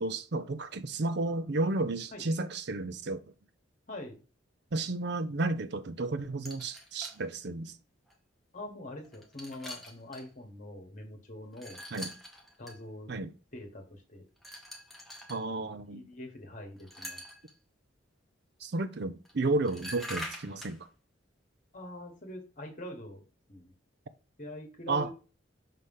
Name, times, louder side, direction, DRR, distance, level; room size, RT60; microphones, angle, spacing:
voice 1, 0.0-3.2 4.7-7.8 11.9-12.1 13.1-13.3 15.3-16.0 18.6-20.9 24.9-25.1, right 2 dB, 55° right, 0.6 m, -32 dB
voice 2, 3.9-4.2 8.5-11.8 12.6-13.2 13.5-14.2 15.9-17.2 21.7-23.2 23.5-23.7 24.4-25.1, left 1 dB, 40° left, 1.6 m, -44 dB
sound 1, 6.5-7.2 8.1-8.2 9.0-10.3 11.5-12.8 14.4-15.4 16.8-17.5 19.2-19.3 19.7-20.8, equal, ahead, 1.0 m, -44 dB
5.8 x 3.3 x 5.5 m
head